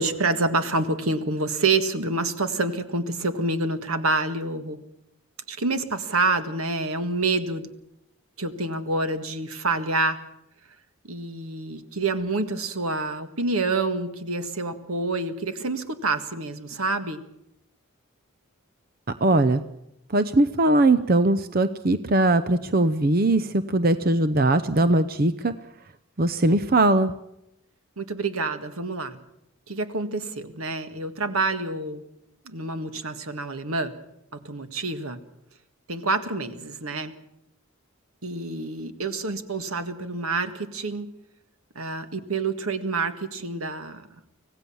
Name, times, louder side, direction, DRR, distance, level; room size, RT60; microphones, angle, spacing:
voice 1, 0.0-4.8 5.5-7.7 8.4-10.2 11.0-17.2 28.0-29.2 29.7-32.0 32.5-33.9 34.4-35.2 35.9-37.1 38.2-41.1 41.8-44.1, right 3 dB, 85° right, 9 dB, 1.8 m, -27 dB
voice 2, 19.2-19.6 20.1-25.5 26.2-27.1, right 2 dB, 45° right, 13 dB, 0.7 m, -20 dB
25.5 x 17.0 x 7.2 m, 0.80 s
head